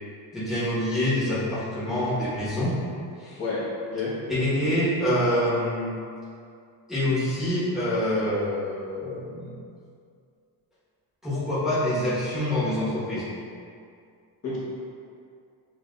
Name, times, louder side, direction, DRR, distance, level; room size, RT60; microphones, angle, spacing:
voice 1, 0.3-2.7 3.2-3.4 4.3-5.9 6.9-9.5 11.2-13.3, left 1 dB, ahead, -13 dB, 1.1 m, -26 dB
voice 2, 3.4-4.2 14.4-14.6, left 3 dB, 35° left, -10 dB, 1.2 m, -29 dB
7.4 x 2.5 x 2.4 m, 2.4 s
cardioid pair, 165°, 44 cm